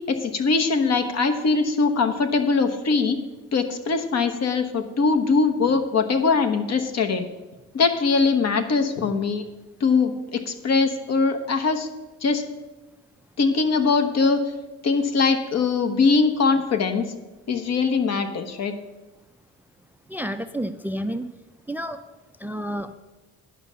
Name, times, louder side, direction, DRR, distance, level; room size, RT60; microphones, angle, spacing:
voice 1, 0.1-3.2 3.5-7.3 7.7-9.4 9.8-11.9 12.2-12.4 13.4-14.4 14.8-17.1 17.5-18.7, left 4 dB, 60° left, 7 dB, 1.2 m, -22 dB
voice 2, 20.1-21.3 21.7-22.0 22.4-22.9, equal, 5° right, 11 dB, 0.4 m, -30 dB
10.5 x 5.6 x 6.3 m, 1.1 s
cardioid pair, 90°, 30 cm